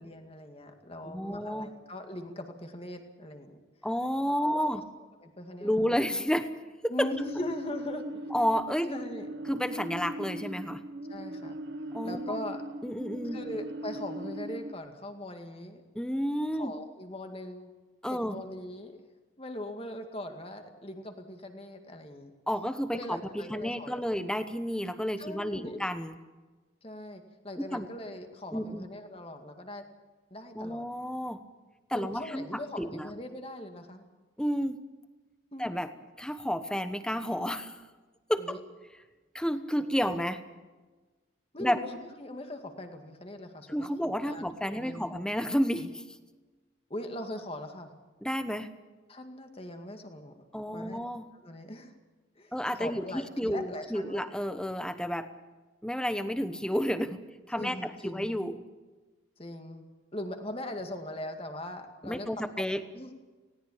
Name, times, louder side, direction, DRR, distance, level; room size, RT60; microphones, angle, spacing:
voice 1, 0.0-3.6 4.4-4.7 5.2-6.0 6.9-8.3 8.9-9.3 11.1-11.6 12.0-12.6 13.3-15.8 16.6-17.7 18.1-18.9 19.4-22.3 22.9-24.0 25.2-25.8 26.8-29.8 30.3-30.9 31.9-34.0 35.5-35.7 38.4-38.6 41.5-45.1 46.9-47.9 49.1-50.4 50.7-51.0 51.4-51.9 52.4-54.2 57.5-58.3 59.4-59.8 60.1-62.3 62.6-62.7 62.9-63.1, left 1 dB, 30° left, 5 dB, 2.1 m, -40 dB
voice 2, 1.0-1.7 3.8-4.8 5.6-6.5 6.8-7.1 8.3-8.9 9.5-10.8 11.9-12.4 12.8-13.4 15.9-16.7 18.0-18.4 22.5-26.2 27.6-27.9 28.5-28.9 30.5-31.4 31.9-33.1 34.4-34.8 35.6-35.9 36.2-37.8 38.3-38.6 39.3-40.4 41.6-41.8 43.7-46.0 48.2-48.7 50.5-51.3 52.5-55.3 55.8-57.2 57.5-58.6 62.0-62.8, equal, 5° left, 10 dB, 1.0 m, -31 dB
sound 1, 7.0-14.7, right 1 dB, 60° right, 1.0 m, -39 dB
19.5 x 17.5 x 8.6 m, 1.3 s
head